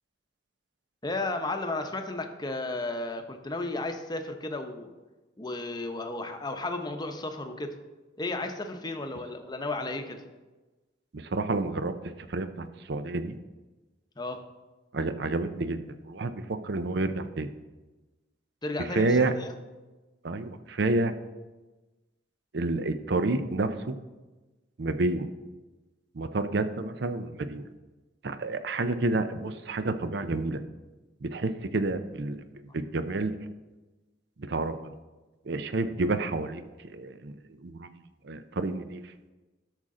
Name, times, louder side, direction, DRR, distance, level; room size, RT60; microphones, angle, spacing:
voice 1, 1.0-4.9 5.4-7.7 8.2-10.2 14.2-14.4 18.6-19.5, left 2 dB, 25° left, 6 dB, 0.8 m, -33 dB
voice 2, 11.1-11.9 12.3-13.3 14.9-17.5 18.8-19.3 20.2-21.1 22.5-24.0 24.8-25.3 26.2-27.6 28.2-30.6 31.2-32.4 32.7-33.3 34.4-34.8 35.5-36.6 36.9-37.3 37.6-37.9 38.2-39.0, right 2 dB, 65° right, 11 dB, 0.6 m, -29 dB
12.5 x 6.4 x 3.8 m, 1.2 s
head